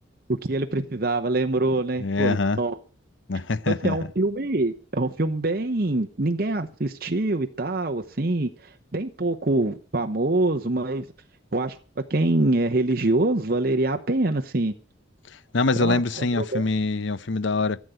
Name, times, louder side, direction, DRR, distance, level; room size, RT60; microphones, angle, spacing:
voice 1, 0.3-2.8 3.7-11.1 11.5-11.8 12.1-14.7 15.8-16.7, right 2 dB, 50° right, 0.9 m, -25 dB
voice 2, 2.0-2.6 3.3-4.0 15.5-17.8, left 3 dB, 75° left, 0.8 m, -24 dB
14.0 x 8.4 x 7.8 m
head